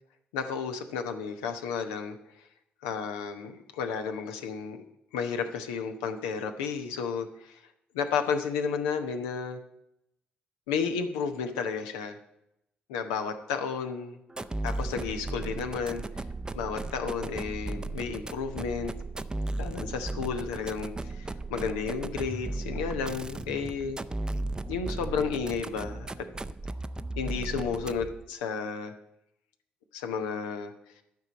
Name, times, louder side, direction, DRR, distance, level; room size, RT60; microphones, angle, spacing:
voice 1, 0.3-2.2 2.8-4.8 5.1-7.6 7.9-9.6 10.7-12.2 12.9-14.2 14.6-16.0 16.5-18.9 19.6-24.0 24.7-26.3 27.2-28.9 29.9-30.7, left 6 dB, 70° left, 7 dB, 0.9 m, -32 dB
sound 1, 14.3-28.3, right 2 dB, 15° right, 0.6 m, -36 dB
12.0 x 5.5 x 7.8 m, 0.82 s
figure-of-eight pair, 45°, 5 cm